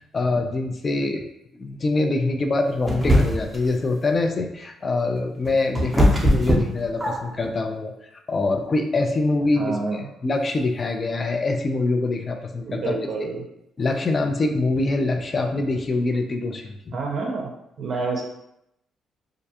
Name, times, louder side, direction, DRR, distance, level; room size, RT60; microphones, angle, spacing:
voice 1, 0.1-1.3 1.6-7.9 8.3-12.9 13.8-17.0, left 2 dB, 35° left, 5 dB, 0.3 m, -24 dB
sound 1, 2.9-3.6 5.2-7.5, equal, 5° right, 0.6 m, -20 dB
voice 2, 9.5-10.0 12.7-13.5 16.9-17.5 17.8-18.2, right 3 dB, 60° right, 0 dB, 0.5 m, -28 dB
2.4 x 2.2 x 2.8 m, 0.81 s
cardioid pair, 90°, 0 cm